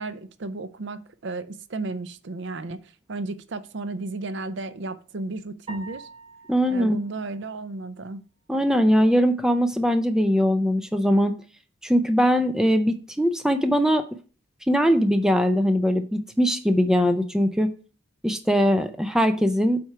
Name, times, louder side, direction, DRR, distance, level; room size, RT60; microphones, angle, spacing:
voice 1, 0.0-6.1 6.7-8.2, right 3 dB, 55° right, 0.5 m, -33 dB
sound 1, 5.7-8.1, right 2 dB, 30° right, 2.5 m, -46 dB
voice 2, 6.5-7.0 8.5-11.3 11.8-14.1 14.7-17.7 18.2-19.8, equal, 5° right, 0.5 m, -21 dB
7.5 x 4.4 x 4.8 m
head